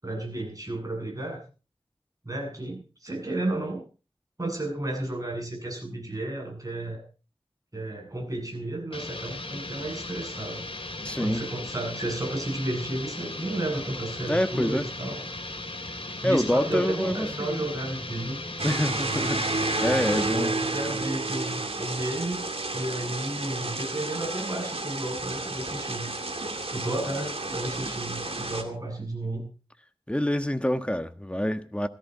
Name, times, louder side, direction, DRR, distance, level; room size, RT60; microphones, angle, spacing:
voice 1, 0.0-1.4 2.2-3.8 4.4-7.0 7.7-10.7 11.2-15.2 16.2-18.4 20.1-22.4 22.7-26.1 26.7-29.5, right 1 dB, 35° right, 7.8 m, -32 dB
sound 1, 8.9-20.4, left 2 dB, 65° left, 2.9 m, -37 dB
voice 2, 11.0-11.4 14.2-14.9 16.2-17.7 18.6-19.5 19.8-20.6 30.1-31.9, left 1 dB, 10° left, 1.4 m, -26 dB
sound 2, 18.6-28.6, right 2 dB, 80° right, 2.3 m, -31 dB
17.0 x 14.0 x 4.2 m
wide cardioid pair, 55°, 10 cm